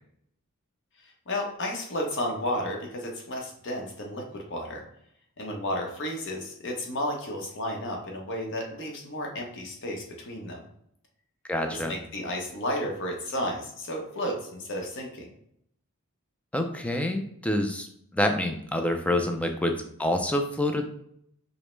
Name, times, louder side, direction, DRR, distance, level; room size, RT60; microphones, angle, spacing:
voice 1, 1.0-4.8 5.4-10.6 11.7-15.3, left 1 dB, 55° left, 1 dB, 0.8 m, -32 dB
voice 2, 11.5-11.9 16.5-17.9 18.1-20.8, left 1 dB, 5° left, 5 dB, 0.3 m, -27 dB
5.0 x 2.1 x 3.2 m, 0.71 s
head